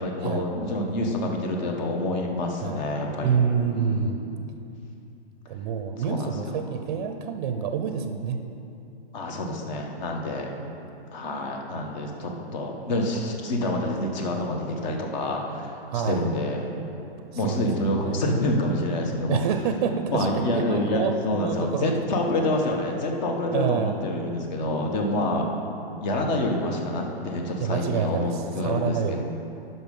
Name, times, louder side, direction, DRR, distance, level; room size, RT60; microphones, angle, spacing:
voice 1, 0.0-3.4 3.7-4.0 6.0-6.3 9.1-10.5 11.1-16.7 17.3-19.4 20.1-25.5 26.0-29.2, left 1 dB, 45° left, 2 dB, 1.5 m, -27 dB
voice 2, 3.2-4.2 5.5-8.4 15.9-16.3 17.3-18.2 19.3-21.9 23.5-24.0 27.6-29.2, right 7 dB, 40° right, 7 dB, 0.6 m, -27 dB
11.5 x 5.6 x 5.5 m, 2.7 s
hypercardioid pair, 140°, 31 cm